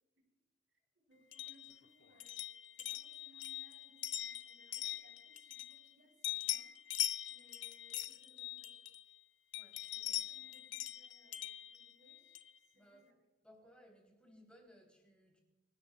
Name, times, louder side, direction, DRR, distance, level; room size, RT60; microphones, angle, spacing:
voice 1, 0.7-2.4 2.8-6.7 7.3-8.9 9.9-12.4 12.6-13.3, equal, 80° right, 1 dB, 4.1 m, -68 dB
sound 1, 1.3-5.9 6.2-9.2 9.5-12.6, left 13 dB, 80° left, 0.6 m, -42 dB
voice 2, 9.5-10.4 12.7-13.1 13.4-15.4, equal, 5° left, 0 dB, 3.4 m, -63 dB
26.5 x 13.0 x 2.4 m, 1.1 s
head